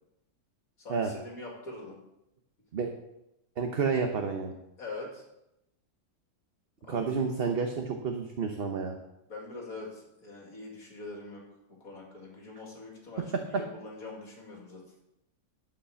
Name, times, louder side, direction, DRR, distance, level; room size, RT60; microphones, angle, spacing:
voice 1, 0.8-2.0 4.8-5.2 6.8-7.1 9.3-11.4 11.7-14.8, left 2 dB, 65° left, -2 dB, 2.8 m, -43 dB
voice 2, 3.6-4.5 6.9-9.0 13.5-13.6, right 5 dB, 45° right, 4 dB, 0.9 m, -30 dB
11.0 x 5.7 x 6.9 m, 0.89 s
omnidirectional pair, 1.6 m